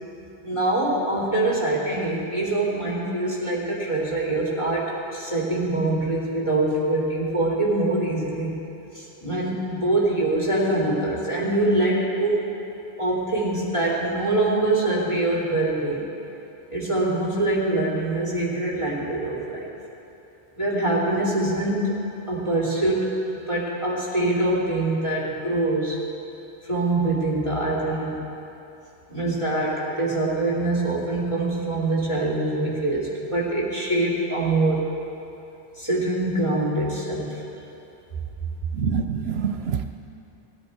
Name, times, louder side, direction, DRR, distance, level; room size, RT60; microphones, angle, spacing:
voice 1, 0.4-8.5 8.9-12.5 13.0-16.1 16.7-19.7 20.6-22.0 22.3-23.1 23.5-26.0 26.6-28.2 29.1-34.8 35.8-37.4, right 2 dB, 30° left, -7 dB, 3.0 m, -24 dB
voice 2, 38.7-39.8, right 7 dB, 70° right, 7 dB, 0.9 m, -26 dB
18.0 x 10.5 x 4.7 m, 2.9 s
omnidirectional pair, 1.1 m